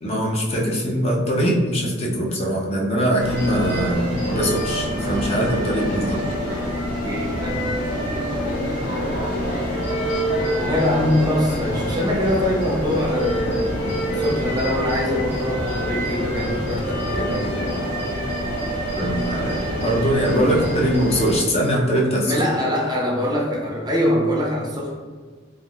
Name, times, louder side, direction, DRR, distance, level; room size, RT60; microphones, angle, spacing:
voice 1, 0.0-6.2 19.0-22.4, equal, 35° left, -2 dB, 0.5 m, -22 dB
sound 1, 3.2-21.4, equal, 60° left, 0.9 m, -26 dB
voice 2, 6.7-8.2 9.7-9.8 10.6-17.6 22.2-25.0, left 1 dB, 20° right, -2 dB, 0.4 m, -24 dB
3.4 x 2.3 x 2.3 m, 1.5 s
head